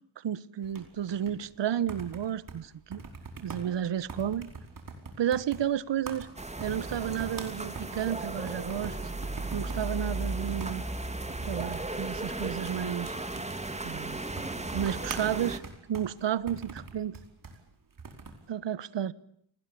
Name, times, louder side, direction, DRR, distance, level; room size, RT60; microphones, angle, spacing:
voice 1, 0.2-3.0 3.4-4.5 5.2-6.3 6.6-9.0 9.5-10.8 11.5-13.2 13.8-14.2 14.7-15.6 15.9-17.2 18.5-19.1, right 10 dB, 70° right, 1.2 m, -32 dB
sound 1, 0.6-18.5, right 4 dB, 45° right, 4.9 m, -45 dB
sound 2, 6.4-15.6, right 2 dB, 15° right, 2.5 m, -35 dB
28.5 x 20.5 x 8.6 m
cardioid pair, 105°, 45 cm